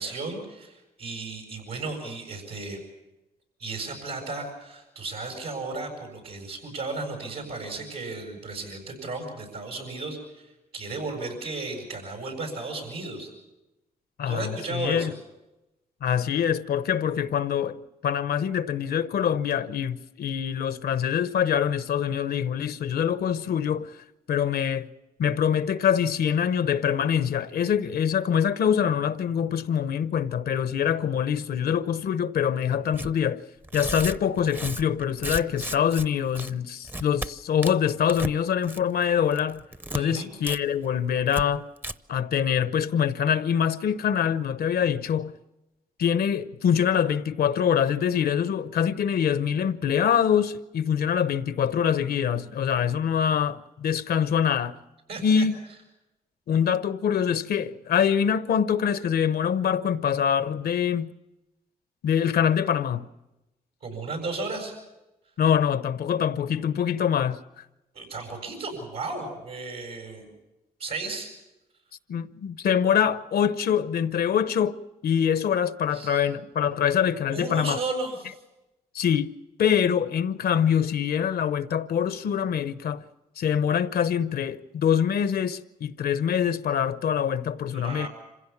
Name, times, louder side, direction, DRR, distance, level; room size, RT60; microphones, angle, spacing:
voice 1, 0.0-2.8 3.6-13.3 14.3-15.1 39.9-40.3 55.1-55.5 63.8-64.8 67.9-70.3 70.8-71.3 75.9-76.2 77.3-78.4 87.7-88.1, right 3 dB, 90° right, 7.6 m, -34 dB
voice 2, 14.2-15.1 16.0-23.9 24.3-24.9 25.2-33.4 33.7-39.6 39.9-41.6 42.1-45.3 46.0-54.8 55.2-55.5 56.5-61.1 62.0-63.1 65.4-67.4 72.1-74.8 75.0-77.8 78.9-79.3 79.6-83.0 83.4-88.1, left 8 dB, 80° left, 0.8 m, -24 dB
Tearing, 32.9-33.1 33.6-36.1 36.3-36.5 36.8-37.3 37.6-38.3 38.6-39.0 39.3-40.0 40.4-40.6 40.8-40.9 41.3-41.4 41.8-41.9, right 1 dB, 10° right, 0.6 m, -34 dB
26.0 x 16.0 x 7.2 m
cardioid pair, 70°, 16 cm